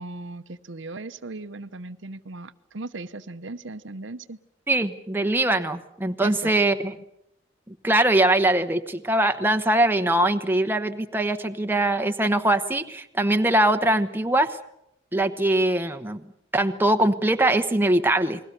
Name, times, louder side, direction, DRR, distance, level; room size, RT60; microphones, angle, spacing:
voice 1, 0.0-4.4 6.2-6.5, right 2 dB, 75° right, 11 dB, 0.9 m, -37 dB
voice 2, 4.7-6.9 7.7-14.6 15.1-16.3 16.5-18.4, right 1 dB, 10° right, 7 dB, 1.0 m, -22 dB
29.5 x 21.0 x 6.8 m, 0.80 s
head